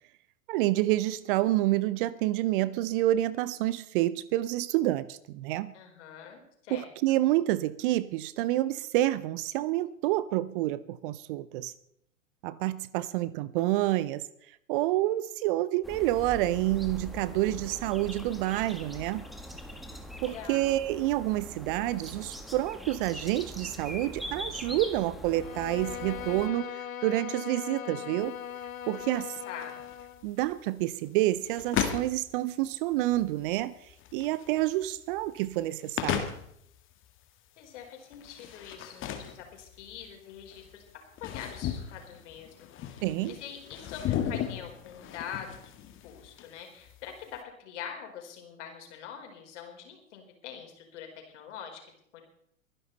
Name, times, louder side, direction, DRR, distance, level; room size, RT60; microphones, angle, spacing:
voice 1, 0.5-5.7 6.7-11.7 12.4-14.3 14.7-19.2 20.2-28.4 28.9-29.4 30.2-33.8 34.1-36.3 43.0-43.4, right 16 dB, 40° right, 18 dB, 0.7 m, -28 dB
voice 2, 5.7-6.9 20.1-20.8 29.4-29.8 37.6-45.7 46.0-51.8 52.1-52.2, left 8 dB, 60° left, 3 dB, 4.7 m, -44 dB
sound 1, 15.8-26.5, equal, ahead, 1.7 m, -42 dB
Bowed string instrument, 25.3-30.2, left 9 dB, 80° left, 1.1 m, -40 dB
sound 2, 28.2-47.4, left 10 dB, 30° left, 2.0 m, -37 dB
23.0 x 11.0 x 4.1 m, 0.72 s
hypercardioid pair, 110°, 40 cm